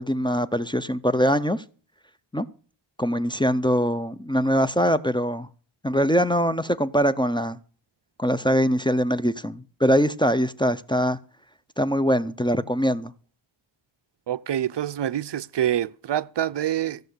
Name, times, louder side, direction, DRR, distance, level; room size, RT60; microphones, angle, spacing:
voice 1, 0.0-1.6 2.3-2.5 3.0-5.5 5.8-7.6 8.2-11.2 11.8-13.1, equal, 10° left, 0.5 m, -22 dB
voice 2, 14.3-17.0, right 11 dB, 60° right, 0.6 m, -26 dB
15.5 x 6.6 x 8.0 m
wide cardioid pair, 120°, 48 cm